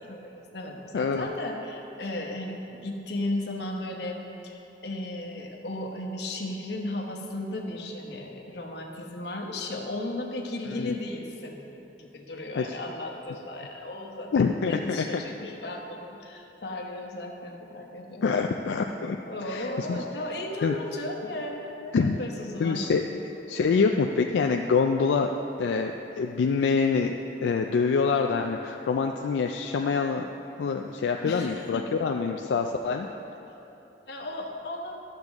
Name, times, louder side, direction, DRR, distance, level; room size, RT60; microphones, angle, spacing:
voice 1, 0.0-11.6 11.9-18.3 19.2-22.9 31.2-31.9 34.1-35.0, left 1 dB, 65° left, 1 dB, 1.0 m, -35 dB
voice 2, 0.9-1.3 10.8-10.9 12.6-12.8 14.3-15.2 18.2-19.2 19.5-20.0 20.6-20.7 21.9-22.2 22.6-23.0 23.5-25.3 25.6-27.1 27.4-30.3 30.6-33.1, left 5 dB, 90° left, 3 dB, 0.3 m, -25 dB
11.5 x 6.7 x 3.5 m, 3.0 s
head